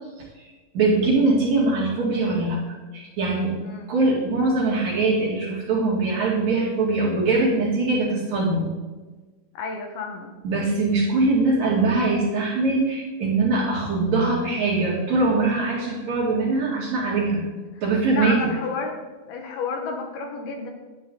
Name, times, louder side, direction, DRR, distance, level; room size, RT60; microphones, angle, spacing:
voice 1, 0.7-3.6 3.9-8.7 10.4-17.5 17.8-18.5, right 3 dB, 50° right, -4 dB, 3.2 m, -22 dB
voice 2, 3.6-3.9 9.5-10.3 18.1-19.0 19.3-20.7, left 4 dB, 75° left, 3 dB, 3.2 m, -31 dB
11.5 x 9.0 x 3.9 m, 1.3 s
omnidirectional pair, 4.5 m